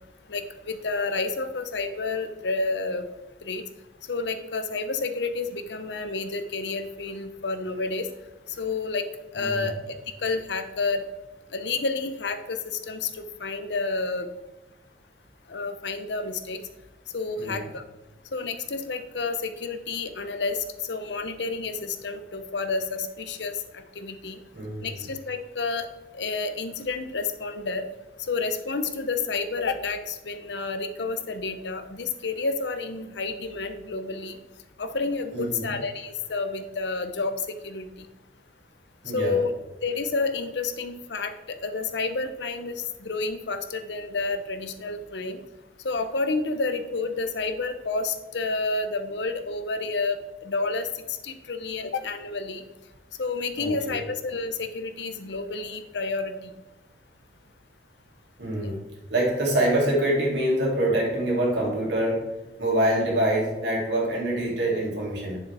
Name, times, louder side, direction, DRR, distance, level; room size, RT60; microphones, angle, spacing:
voice 1, 0.3-3.1 3.4-3.6 4.1-8.1 8.6-9.0 9.3-9.7 10.2-11.0 11.5-12.6 12.9-14.3 15.5-16.6 17.1-17.8 18.3-23.5 24.0-24.4 24.8-25.9 26.1-27.8 28.3-34.4 34.8-38.1 39.1-39.5 39.8-41.3 41.6-45.4 45.8-50.2 50.4-50.9 51.2-52.6 53.2-56.3 58.5-58.7, left 3 dB, 80° left, 9 dB, 0.7 m, -30 dB
voice 2, 9.4-9.7 17.4-17.7 24.5-25.0 35.3-35.7 39.0-39.4 53.6-54.0 58.4-58.8 59.1-62.3 62.6-65.4, right 1 dB, 80° right, -3 dB, 2.7 m, -25 dB
9.5 x 7.1 x 3.4 m, 1.1 s
head